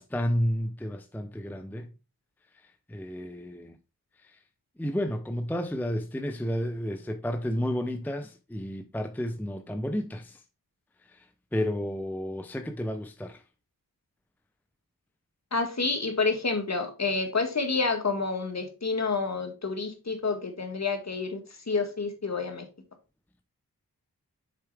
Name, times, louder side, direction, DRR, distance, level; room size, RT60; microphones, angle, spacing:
voice 1, 0.0-1.9 2.5-3.8 4.2-4.4 4.8-10.4 11.1-13.4, equal, 5° left, 0.6 m, -32 dB
voice 2, 15.5-22.7, left 4 dB, 45° left, 1.8 m, -29 dB
6.7 x 4.6 x 3.3 m
cardioid pair, 40°, 38 cm